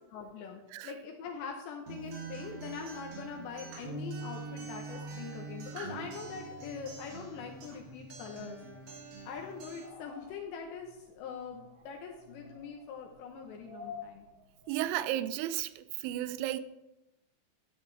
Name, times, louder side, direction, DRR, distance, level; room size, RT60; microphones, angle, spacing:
voice 1, 0.1-8.6 9.3-14.2, left 6 dB, 75° left, 3.0 m, -43 dB
Acoustic guitar, 1.9-9.9, right 3 dB, 75° right, 4.5 m, -44 dB
sound 1, 2.5-15.1, left 3 dB, 40° right, 4.7 m, -54 dB
voice 2, 14.7-16.6, right 13 dB, 90° right, 3.0 m, -33 dB
13.0 x 8.9 x 3.2 m
omnidirectional pair, 5.4 m